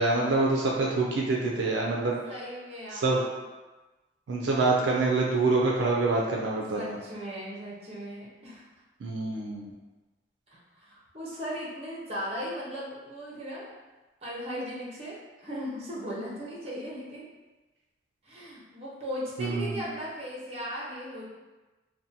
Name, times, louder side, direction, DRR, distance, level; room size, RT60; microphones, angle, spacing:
voice 1, 0.0-2.1 2.9-3.2 4.3-6.9 9.0-9.7 19.4-19.8, right 3 dB, 75° right, -2 dB, 0.3 m, -26 dB
voice 2, 2.3-3.2 6.7-8.6 10.5-13.7 14.2-17.3 18.2-21.3, equal, 35° right, -6 dB, 0.6 m, -37 dB
2.6 x 2.1 x 2.7 m, 1.2 s
head